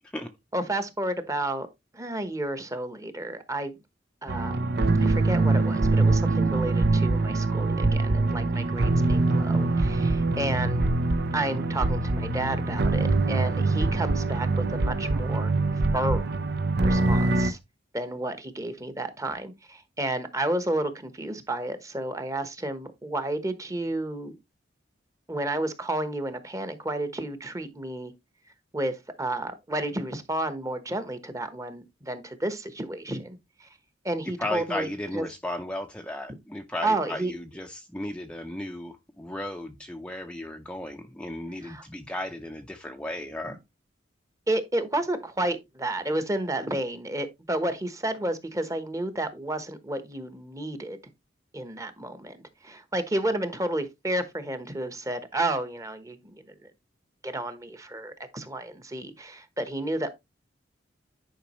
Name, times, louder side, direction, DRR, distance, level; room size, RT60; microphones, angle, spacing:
voice 1, 0.5-1.7 1.9-3.8 4.2-4.7 5.0-10.8 11.3-15.5 15.9-16.4 16.8-17.6 17.9-24.3 25.3-28.1 28.7-33.7 34.0-34.9 35.1-35.3 36.8-37.3 41.6-41.8 43.4-43.6 44.5-51.0 51.5-56.7 57.2-60.1, right 1 dB, 20° right, 1.1 m, -31 dB
sound 1, 4.3-17.5, right 2 dB, 60° right, 0.7 m, -24 dB
voice 2, 34.4-43.6, left 1 dB, 5° left, 0.6 m, -35 dB
10.0 x 5.1 x 3.1 m
head